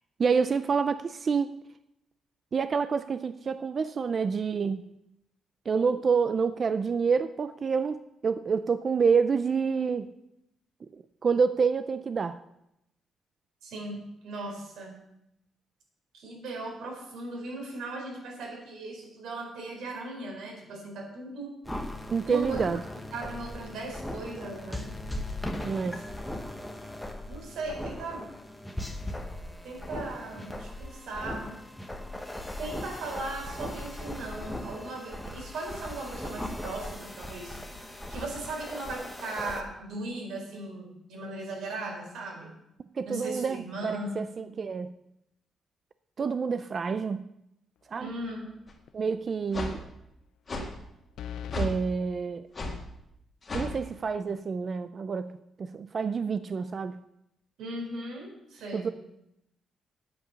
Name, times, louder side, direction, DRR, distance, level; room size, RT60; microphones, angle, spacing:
voice 1, 0.2-1.5 2.5-4.8 5.7-10.1 10.9-12.4 22.1-22.8 25.6-26.0 43.0-44.9 46.2-47.3 47.9-48.1 48.9-49.8 51.5-52.5 53.5-55.3 55.6-57.0 58.7-58.9, right 5 dB, 30° right, 11 dB, 0.4 m, -28 dB
voice 2, 13.6-15.0 16.1-21.5 22.2-22.7 23.1-24.9 25.9-26.1 27.3-28.3 29.6-31.5 32.6-37.6 38.1-42.5 43.1-44.3 48.0-48.5 57.6-58.9, right 2 dB, 90° right, 0 dB, 4.4 m, -38 dB
sound 1, 21.6-39.6, left 1 dB, 5° left, 1.0 m, -38 dB
sound 2, 48.0-48.5 48.9-49.0 51.2-51.7, left 8 dB, 75° left, 0.5 m, -40 dB
sound 3, 48.7-48.8 49.5-49.8 50.5-50.7 51.5-51.8 52.5-52.8 53.5-53.7, left 2 dB, 25° left, 1.9 m, -32 dB
9.9 x 8.5 x 6.9 m, 0.83 s
cardioid pair, 180°, 0 cm